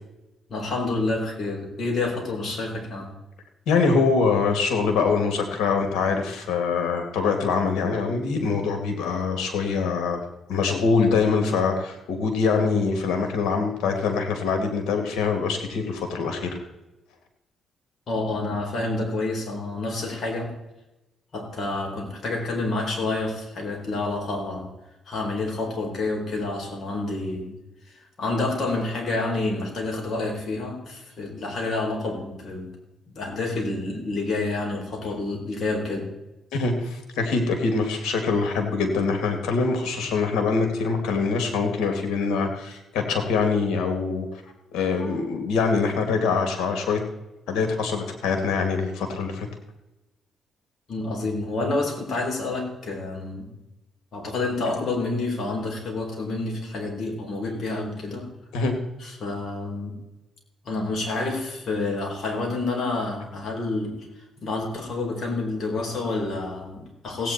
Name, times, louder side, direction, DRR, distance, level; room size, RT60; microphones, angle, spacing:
voice 1, 0.5-3.1 18.1-20.5 21.3-24.7 25.1-27.6 27.9-32.7 33.1-36.1 45.0-45.2 50.9-53.5 54.1-58.3 59.0-60.0 60.6-67.3, left 2 dB, 50° left, 0 dB, 4.7 m, -28 dB
voice 2, 3.7-10.2 10.5-16.6 36.5-44.3 44.7-47.0 47.5-49.5 58.5-58.7, left 4 dB, 90° left, 5 dB, 2.6 m, -24 dB
16.5 x 9.2 x 4.5 m, 0.99 s
cardioid pair, 90°, 0 cm